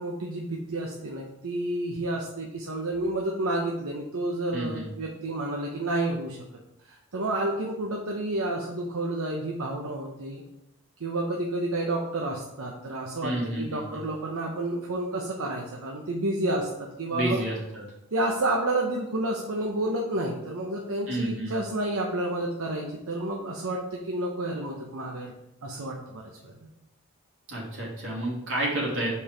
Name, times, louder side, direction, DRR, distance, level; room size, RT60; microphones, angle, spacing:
voice 1, 0.0-6.4 6.9-10.4 11.0-17.5 18.1-25.3 25.6-26.5, right 1 dB, 80° right, -1 dB, 0.8 m, -30 dB
voice 2, 4.5-4.9 13.2-14.0 17.1-17.8 21.1-21.5 27.5-29.1, right 1 dB, 65° right, -5 dB, 2.5 m, -30 dB
5.4 x 4.6 x 5.0 m, 0.86 s
head